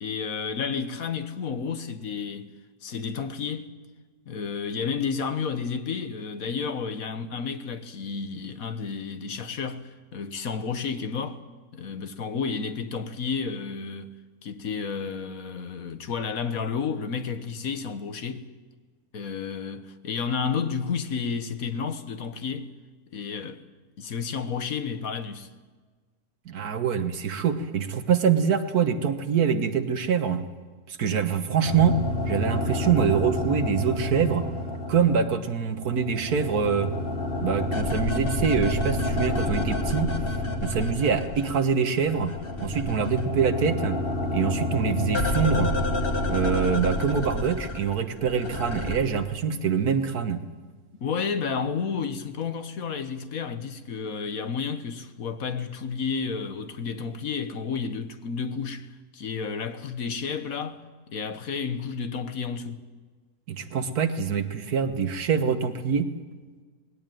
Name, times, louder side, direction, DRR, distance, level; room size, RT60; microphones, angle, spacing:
voice 1, 0.0-2.5 2.8-3.7 4.3-11.4 11.7-14.1 14.4-18.5 19.1-22.7 23.1-23.6 24.0-25.5 51.0-58.9 59.1-60.8 61.1-62.8, left 5 dB, 70° left, 1.6 m, -31 dB
voice 2, 26.5-30.4 30.9-32.0 32.3-34.5 34.9-36.9 37.4-40.1 40.6-42.3 42.6-44.0 44.3-45.7 46.3-50.4 63.5-66.1, right 6 dB, 90° right, 1.8 m, -25 dB
sound 1, 31.7-35.4 35.8-41.7 42.0-49.0, left 2 dB, 40° left, 1.7 m, -29 dB
20.5 x 17.0 x 9.1 m
omnidirectional pair, 1.6 m